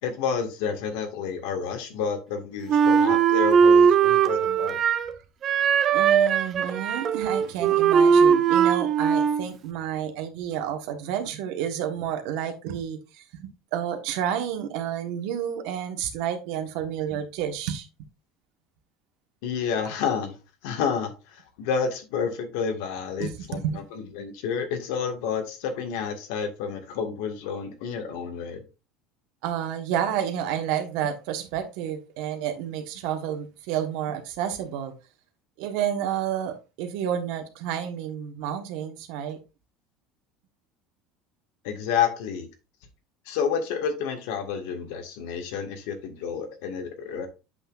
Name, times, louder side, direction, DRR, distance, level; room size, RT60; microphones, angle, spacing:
voice 1, 0.0-4.8 19.4-20.4 20.6-28.6 41.6-42.5 43.3-47.3, left 6 dB, 80° left, 1.8 m, -30 dB
Wind instrument woodwind instrument, 2.7-5.1 5.4-9.5, right 7 dB, 35° right, 0.5 m, -20 dB
voice 2, 5.9-17.9 23.2-23.8 29.4-34.9 35.6-39.4, right 9 dB, 70° right, 1.4 m, -30 dB
8.0 x 5.9 x 2.5 m
cardioid pair, 140°, 0 cm